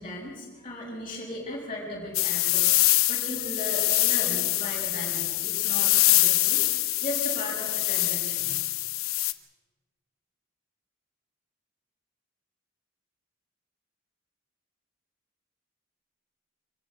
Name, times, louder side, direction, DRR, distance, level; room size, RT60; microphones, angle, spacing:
voice 1, 0.0-8.5, left 1 dB, 25° left, -5 dB, 6.6 m, -37 dB
sound 1, 2.1-9.3, left 17 dB, 90° left, 0.9 m, -24 dB
25.0 x 15.0 x 8.3 m, 1.4 s
head